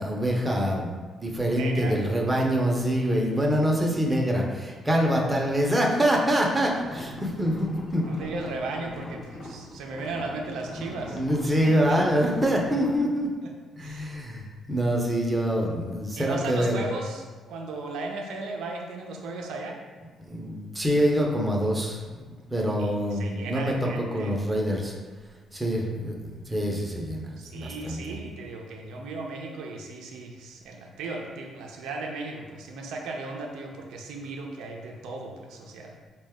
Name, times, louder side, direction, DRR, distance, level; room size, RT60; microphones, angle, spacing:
voice 1, 0.0-8.1 11.1-13.3 13.8-16.9 20.3-22.0 22.5-24.9 25.5-28.2, equal, 15° right, -1 dB, 0.7 m, -25 dB
voice 2, 1.5-2.5 7.0-7.2 8.0-11.2 11.6-12.0 13.4-13.5 13.8-14.1 16.1-19.8 22.8-24.4 27.4-36.0, right 3 dB, 85° right, 1 dB, 0.5 m, -36 dB
sound 1, 6.6-13.0, left 1 dB, 40° left, 0.8 m, -41 dB
3.8 x 2.2 x 3.5 m, 1.4 s
cardioid pair, 90°, 0 cm